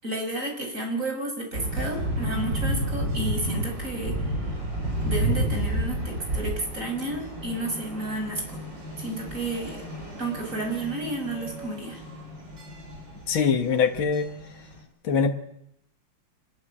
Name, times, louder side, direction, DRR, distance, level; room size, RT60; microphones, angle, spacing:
voice 1, 0.0-4.2 5.0-8.4 9.0-9.8 10.2-12.0, right 2 dB, 40° right, 3 dB, 6.5 m, -31 dB
sound 1, 1.5-14.8, right 1 dB, 65° right, 7.0 m, -31 dB
voice 2, 13.3-14.3 15.0-15.4, left 5 dB, 85° left, 5 dB, 2.4 m, -23 dB
25.5 x 22.0 x 8.9 m, 0.77 s
omnidirectional pair, 2.1 m